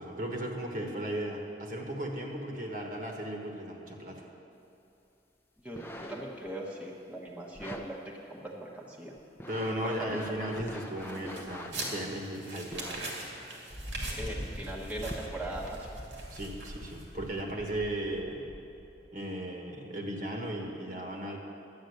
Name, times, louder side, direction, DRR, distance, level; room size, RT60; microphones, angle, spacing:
voice 1, 0.0-4.3 9.5-13.0 16.3-18.5 19.1-21.4, right 1 dB, 50° right, 1 dB, 1.3 m, -36 dB
sound 1, 5.6-6.5 7.5-7.9 8.5-8.6 9.2-12.1 12.7-13.0 14.0-14.1 15.0-15.4 16.0-16.1, left 1 dB, 10° left, 0.6 m, -44 dB
voice 2, 5.6-9.1 9.8-10.1 10.8-10.9 14.1-16.0, right 1 dB, 5° right, -3 dB, 1.0 m, -40 dB
sound 2, 11.0-17.3, right 2 dB, 85° right, 2.2 m, -42 dB
Thunder, 13.7-19.2, equal, 30° left, 1.2 m, -42 dB
11.5 x 8.8 x 6.5 m, 2.7 s
head